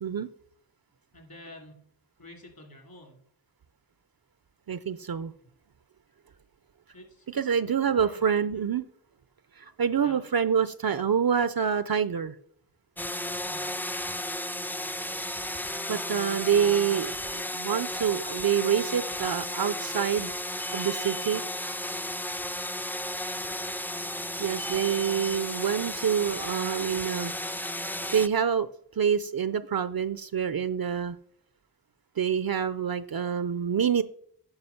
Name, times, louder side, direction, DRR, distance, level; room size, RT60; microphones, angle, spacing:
voice 1, 1.1-1.8 2.2-3.2 6.9-8.6 10.0-10.2 13.5-13.7 23.2-23.6, left 1 dB, 60° left, 2 dB, 2.6 m, -49 dB
voice 2, 4.7-5.3 7.3-8.8 9.6-12.4 15.9-20.3 20.7-21.4 24.4-27.3 28.1-28.7 29.0-31.2 32.2-34.0, right 8 dB, 60° right, 14 dB, 0.5 m, -26 dB
sound 1, 13.0-28.3, left 1 dB, 5° left, 0.4 m, -34 dB
9.7 x 5.7 x 5.7 m, 0.63 s
wide cardioid pair, 40°, 40 cm